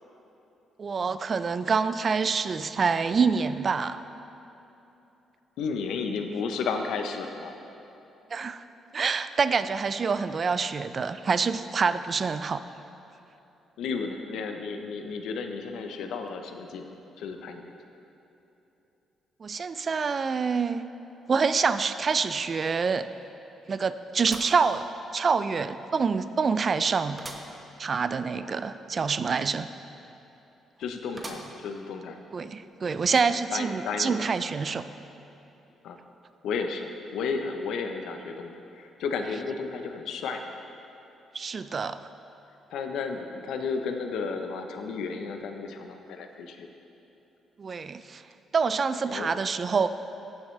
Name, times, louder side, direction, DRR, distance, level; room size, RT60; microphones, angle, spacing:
voice 1, 0.8-4.0 8.3-8.6 8.9-12.6 19.4-20.9 21.3-23.1 23.7-24.9 25.1-27.3 27.8-29.7 32.3-34.8 41.3-42.0 47.6-48.2 48.5-49.9, right 5 dB, 40° right, 12 dB, 0.3 m, -26 dB
voice 2, 5.6-7.6 13.8-17.7 28.4-28.5 30.8-32.2 33.5-34.2 35.8-36.0 36.4-40.4 42.7-46.7 49.1-49.3, left 5 dB, 80° left, 5 dB, 0.7 m, -33 dB
sound 1, 24.2-25.3 25.8-25.9 27.2-27.6 28.0-28.1 28.3-28.4 31.2-31.8 32.4-32.5 33.4-33.5, right 2 dB, 25° right, 0.9 m, -42 dB
14.5 x 7.2 x 3.2 m, 3.0 s
cardioid pair, 90°, 0 cm